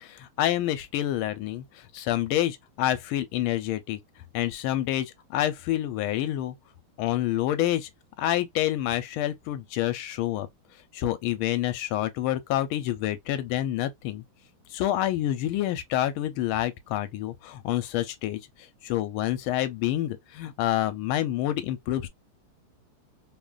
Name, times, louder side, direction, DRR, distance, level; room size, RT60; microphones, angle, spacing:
voice 1, 0.0-4.0 4.3-6.6 7.0-7.9 8.2-10.5 10.9-14.2 14.7-18.4 18.8-22.1, left 13 dB, 80° left, 1.4 m, -28 dB
3.5 x 2.4 x 2.2 m
omnidirectional pair, 2.4 m